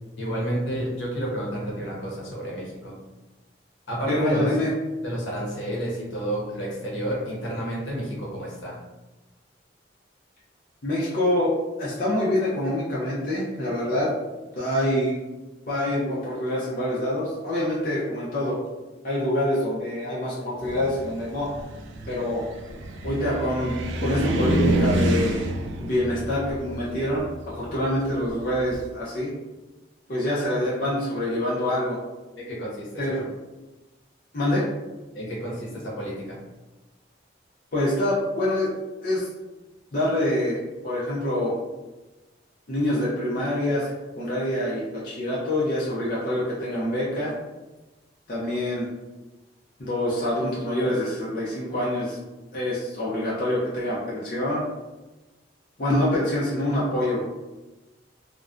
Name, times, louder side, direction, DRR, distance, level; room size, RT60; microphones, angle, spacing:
voice 1, 0.2-3.0 3.9-4.6 5.0-8.8 32.4-33.2 35.1-36.4, equal, 80° left, -4 dB, 0.8 m, -30 dB
voice 2, 4.1-4.7 10.8-11.5 11.8-14.1 14.6-15.2 15.7-18.6 19.0-21.5 22.1-22.5 23.0-25.4 25.8-29.3 30.1-32.0 33.0-33.3 34.3-34.7 37.7-38.7 39.0-39.3 39.9-41.5 42.7-47.3 48.3-48.9 49.8-52.2 52.5-54.6 55.8-57.3, left 1 dB, 50° left, -7 dB, 0.5 m, -26 dB
Car, 20.6-28.9, right 1 dB, 85° right, 0.3 m, -28 dB
2.4 x 2.1 x 2.4 m, 1.1 s
head